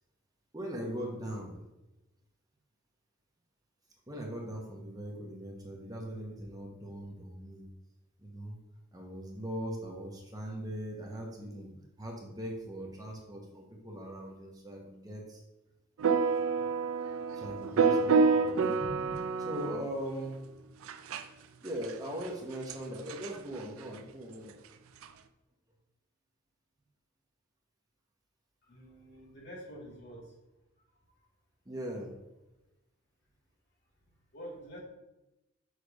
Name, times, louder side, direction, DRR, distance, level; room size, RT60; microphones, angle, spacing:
voice 1, 0.5-1.7 4.1-7.7 8.2-8.6 8.9-11.7 12.0-15.4 17.3-20.4 21.6-24.6 31.6-32.1, equal, 20° right, 0 dB, 0.9 m, -40 dB
sound 1, 16.0-19.8 20.9-21.2 21.9-22.0 22.2-22.3 22.7-22.8 23.1-23.3 25.0-25.1, right 5 dB, 90° right, 0.4 m, -27 dB
voice 2, 28.6-30.3 30.8-30.9 34.3-34.8, equal, 55° left, -3 dB, 2.0 m, -47 dB
6.5 x 3.3 x 5.0 m, 0.97 s
head